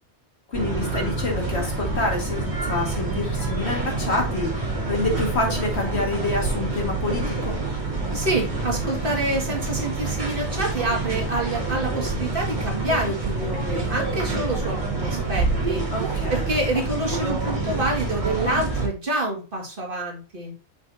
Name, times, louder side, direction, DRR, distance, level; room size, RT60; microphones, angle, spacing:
voice 1, 0.5-7.6 15.9-16.5, left 2 dB, 65° left, 0 dB, 2.3 m, -27 dB
sound 1, 0.5-18.9, right 3 dB, 30° right, 2.4 m, -27 dB
voice 2, 8.1-15.8 16.3-20.5, right 1 dB, 50° right, -1 dB, 2.2 m, -27 dB
6.2 x 6.0 x 2.7 m, 0.34 s
omnidirectional pair, 1.2 m